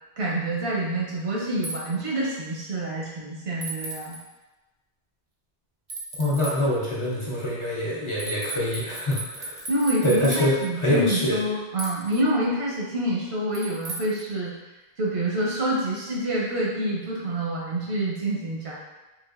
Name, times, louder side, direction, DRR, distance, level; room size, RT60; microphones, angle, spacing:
voice 1, 0.2-4.2 9.7-14.5 15.0-18.8, right 1 dB, 85° right, -5 dB, 1.1 m, -27 dB
sound 1, 1.6-1.8 3.6-4.2 5.9-6.5 8.2-10.7 11.8-12.2 13.5-14.2, right 2 dB, 45° right, 0.5 m, -35 dB
voice 2, 6.2-9.6 10.0-11.4, equal, 40° left, -7 dB, 0.5 m, -25 dB
3.7 x 2.5 x 2.4 m, 1.1 s
omnidirectional pair, 1.0 m